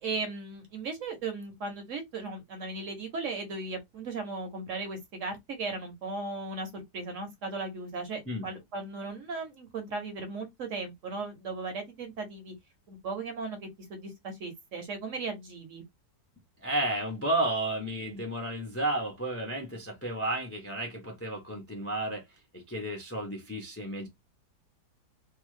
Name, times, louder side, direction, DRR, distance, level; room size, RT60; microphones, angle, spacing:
voice 1, 0.0-12.5 12.9-15.8, right 3 dB, 60° right, 1.0 m, -37 dB
voice 2, 16.6-22.2 22.5-24.1, right 1 dB, 20° left, 0.4 m, -32 dB
2.8 x 2.3 x 3.1 m
omnidirectional pair, 1.8 m